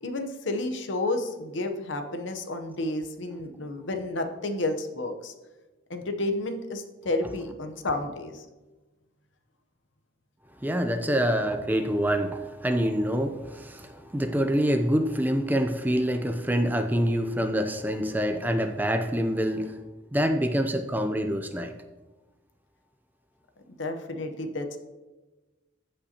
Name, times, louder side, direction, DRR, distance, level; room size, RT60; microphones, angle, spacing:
voice 1, 0.0-5.3 5.9-8.4 23.7-24.8, left 2 dB, 70° left, 6 dB, 0.8 m, -31 dB
voice 2, 10.6-19.9 20.1-21.7, equal, 10° right, 7 dB, 0.5 m, -26 dB
15.0 x 5.4 x 2.9 m, 1.2 s
head